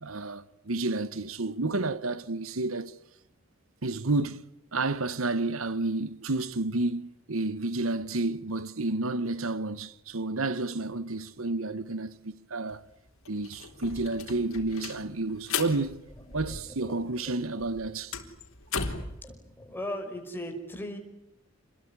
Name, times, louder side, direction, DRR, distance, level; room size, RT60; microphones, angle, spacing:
voice 1, 0.0-2.9 3.8-4.4 4.7-12.8 13.3-16.0 16.3-18.1, right 2 dB, 85° right, 1.3 m, -30 dB
sound 1, 12.7-12.8 13.1-17.0 17.3-19.2, left 5 dB, 80° left, 4.0 m, -37 dB
voice 2, 16.2-17.3 19.2-21.0, left 1 dB, 10° left, 5.4 m, -39 dB
28.0 x 21.5 x 9.8 m
head